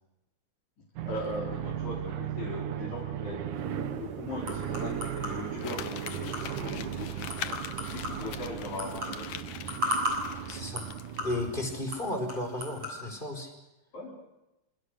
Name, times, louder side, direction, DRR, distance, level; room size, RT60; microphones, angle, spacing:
voice 1, 1.0-3.5 3.9-7.6 7.9-9.3 13.9-14.1, left 2 dB, 65° left, -2 dB, 5.5 m, -39 dB
sound 1, 1.0-11.8, right 9 dB, 75° right, 2.7 m, -36 dB
sound 2, 3.6-13.0, equal, 50° right, 8.0 m, -38 dB
Crumpling crinkling, 5.6-11.3 11.7-11.8, left 10 dB, 85° left, 2.7 m, -43 dB
voice 2, 10.5-10.9 11.2-13.5, left 1 dB, 15° left, 5 dB, 4.8 m, -34 dB
28.0 x 27.0 x 6.7 m, 0.98 s
omnidirectional pair, 3.6 m